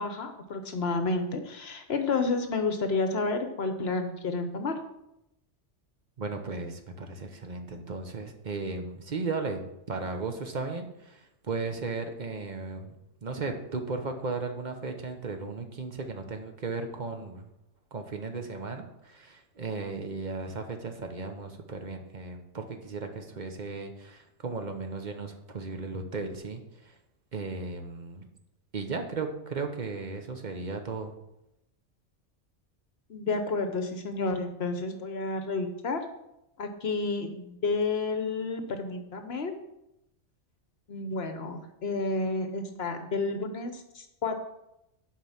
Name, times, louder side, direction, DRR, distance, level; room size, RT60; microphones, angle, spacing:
voice 1, 0.0-4.7 33.1-36.0 36.6-39.5 40.9-44.3, left 3 dB, 60° left, 7 dB, 1.0 m, -30 dB
voice 2, 6.2-12.9 13.2-17.5 17.9-26.9 27.3-28.2 28.7-31.1, right 4 dB, 40° right, 5 dB, 1.1 m, -36 dB
7.5 x 4.8 x 7.1 m, 0.85 s
omnidirectional pair, 1.2 m